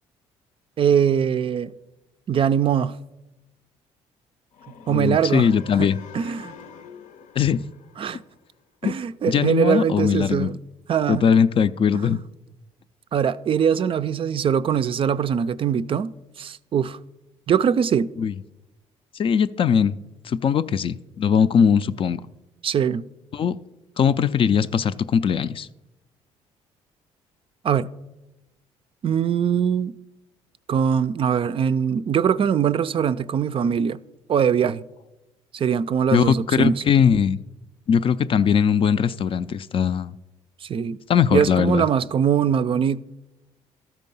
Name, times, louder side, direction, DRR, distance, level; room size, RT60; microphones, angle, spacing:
voice 1, 0.8-1.7 2.3-3.0 4.9-5.5 5.8-5.9 6.1-6.5 8.0-8.2 8.8-10.5 10.9-11.3 13.1-16.1 16.4-17.0 17.5-18.1 22.6-23.1 27.6-27.9 29.0-29.9 30.7-34.0 34.3-34.8 35.5-36.8 40.6-41.0 41.3-43.0, right 8 dB, 45° right, 0.4 m, -22 dB
sound 1, 4.5-8.6, left 7 dB, 75° left, 0.7 m, -45 dB
voice 2, 4.9-6.0 7.4-7.6 8.8-8.9 9.3-10.5 11.1-12.2 18.2-18.3 19.1-20.0 20.2-22.2 23.3-23.6 24.0-25.7 36.1-37.4 37.9-40.1 41.1-41.8, left 7 dB, 45° left, 0.4 m, -20 dB
12.5 x 4.5 x 5.4 m
supercardioid pair, 75°, 13 cm